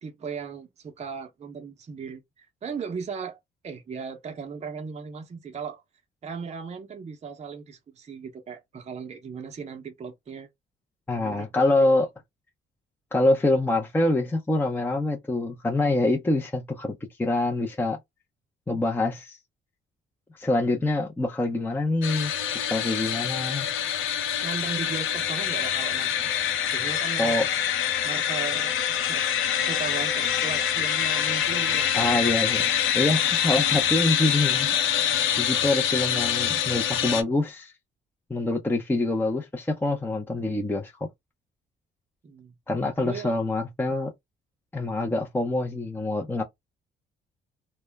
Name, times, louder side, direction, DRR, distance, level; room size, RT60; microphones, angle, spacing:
voice 1, 0.0-3.4 3.6-5.8 6.2-10.5 11.1-12.1 24.4-26.3 26.7-27.3 28.0-29.3 29.6-32.2 33.2-33.3 42.2-42.5 43.0-43.3, right 6 dB, 35° right, 0.6 m, -37 dB
voice 2, 11.1-12.1 13.1-18.0 18.7-19.4 20.3-22.3 22.7-23.7 27.2-27.5 31.9-32.7 32.9-34.7 35.4-37.7 38.3-40.9 42.7-44.1 44.7-46.4, left 2 dB, 10° left, 0.5 m, -25 dB
sound 1, 22.0-37.2, left 9 dB, 80° left, 0.5 m, -25 dB
2.1 x 2.0 x 3.3 m
cardioid pair, 90°, 20 cm